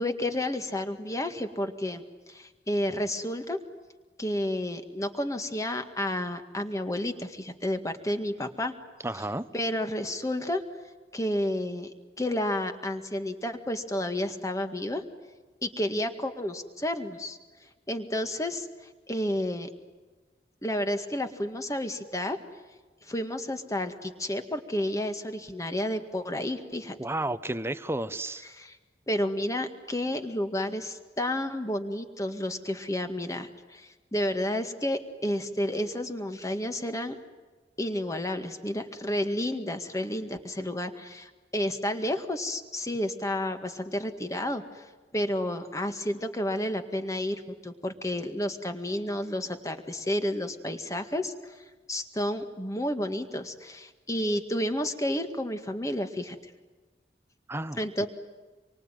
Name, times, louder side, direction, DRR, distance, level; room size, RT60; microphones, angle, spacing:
voice 1, 0.0-3.6 4.2-8.7 9.2-9.3 9.5-10.6 11.1-15.0 15.6-17.4 17.9-18.7 19.1-19.7 20.6-22.4 23.0-27.0 28.4-28.8 29.1-37.2 37.8-44.8 45.1-51.5 51.9-56.4 57.8-58.1, left 1 dB, 20° left, 7 dB, 1.9 m, -31 dB
voice 2, 9.0-9.4 27.0-28.5 57.5-58.1, right 1 dB, 15° right, 13 dB, 0.9 m, -32 dB
27.0 x 24.0 x 9.2 m, 1.3 s
head